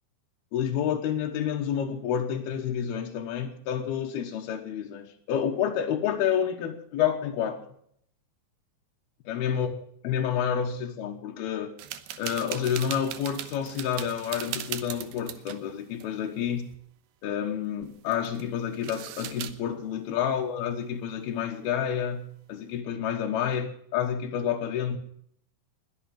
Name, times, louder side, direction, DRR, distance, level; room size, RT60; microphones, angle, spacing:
voice 1, 0.5-7.6 9.3-9.7 10.0-11.8 12.2-16.7 17.2-25.0, left 8 dB, 80° left, 3.2 m, -29 dB
sound 1, 11.8-15.7 15.9-16.1 16.5-16.8 17.8-18.5 18.7-19.5, right 12 dB, 80° right, 2.8 m, -38 dB
21.0 x 8.6 x 7.6 m
omnidirectional pair, 4.4 m